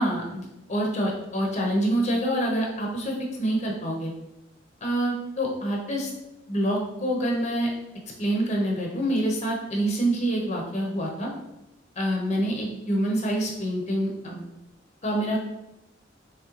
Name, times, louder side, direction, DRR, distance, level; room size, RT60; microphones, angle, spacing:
voice 1, 0.0-4.1 4.8-6.1 6.5-7.7 8.2-11.3 12.0-14.4 15.0-15.4, right 1 dB, 35° left, -1 dB, 0.7 m, -26 dB
3.6 x 3.2 x 3.0 m, 0.91 s
head